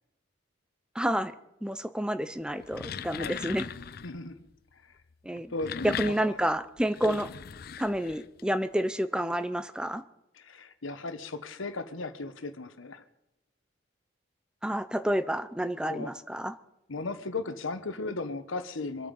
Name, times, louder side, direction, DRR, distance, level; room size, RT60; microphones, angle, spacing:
voice 1, 0.9-1.3 1.6-3.7 5.2-5.5 5.8-7.3 7.8-10.0 14.6-16.5, equal, 5° right, 12 dB, 0.6 m, -29 dB
sound 1, 2.5-4.2 5.3-8.4, left 7 dB, 50° left, 0.5 m, -39 dB
voice 2, 4.0-4.4 4.7-5.0 5.5-6.1 7.0-7.2 10.3-13.0 15.9-16.1 16.9-19.1, left 3 dB, 90° left, 10 dB, 1.2 m, -36 dB
25.5 x 9.0 x 5.4 m, 0.89 s
head